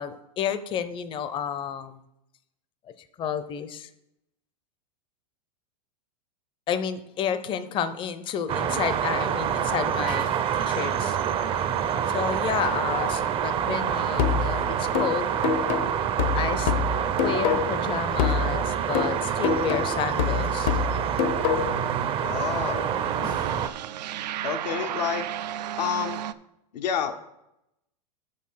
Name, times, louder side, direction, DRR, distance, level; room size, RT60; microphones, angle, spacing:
voice 1, 0.0-2.0 3.2-3.9 6.7-11.2 12.1-15.4 16.3-16.7 17.2-20.8 23.2-23.4, left 8 dB, 25° left, 12 dB, 0.6 m, -31 dB
sound 1, 8.5-23.7, right 8 dB, 25° right, 0.5 m, -27 dB
sound 2, 10.7-11.9 13.6-14.6 14.9-15.0 15.6-26.3, right 10 dB, 85° right, 0.5 m, -38 dB
sound 3, 14.2-17.9 18.2-21.9, left 6 dB, 55° left, 0.8 m, -26 dB
voice 2, 22.2-22.9 24.4-25.2 25.8-26.2 26.7-27.1, left 8 dB, 85° left, 5 dB, 0.9 m, -28 dB
7.0 x 6.6 x 5.5 m, 0.83 s
supercardioid pair, 135°, 21 cm